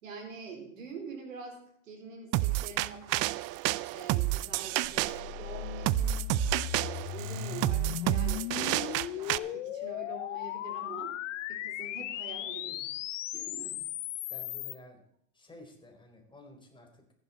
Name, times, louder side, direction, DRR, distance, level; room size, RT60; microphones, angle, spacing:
voice 1, 0.0-3.3 3.9-6.4 6.7-11.1 11.5-13.0 13.3-13.8, right 4 dB, 85° right, 2 dB, 4.4 m, -45 dB
sound 1, 2.3-9.4, right 18 dB, 40° right, 0.5 m, -30 dB
sound 2, 4.8-14.7, left 12 dB, 70° left, 1.2 m, -37 dB
voice 2, 14.3-15.0 15.3-17.0, left 1 dB, 10° left, 3 dB, 4.3 m, -52 dB
14.5 x 11.0 x 4.3 m, 0.70 s
hypercardioid pair, 100°, 38 cm